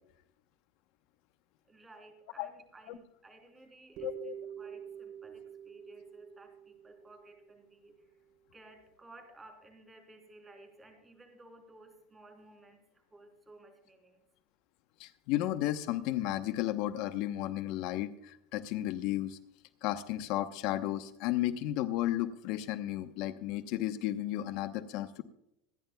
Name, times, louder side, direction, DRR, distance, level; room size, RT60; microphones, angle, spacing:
voice 1, 1.7-8.1 8.5-14.2, right 2 dB, 15° right, 5 dB, 3.4 m, -56 dB
voice 2, 4.0-4.3 15.0-19.4 19.8-25.2, left 14 dB, 65° left, 11 dB, 0.9 m, -33 dB
sound 1, 4.0-8.0, right 9 dB, 55° right, 3.6 m, -47 dB
26.0 x 10.5 x 2.3 m, 0.79 s
supercardioid pair, 120°, 0 cm